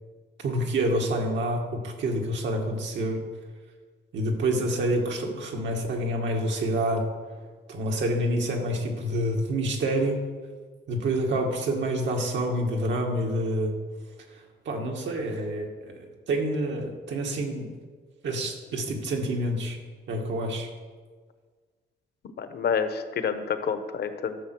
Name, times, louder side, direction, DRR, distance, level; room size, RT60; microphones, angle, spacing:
voice 1, 0.4-3.2 4.1-7.1 7.7-10.3 10.9-13.7 14.7-15.7 16.3-17.7 18.2-19.8 20.1-20.7, right 1 dB, 80° right, 1 dB, 2.2 m, -27 dB
voice 2, 22.4-24.4, left 6 dB, 60° left, 9 dB, 1.0 m, -28 dB
13.0 x 6.8 x 6.2 m, 1.5 s
cardioid pair, 130°, 19 cm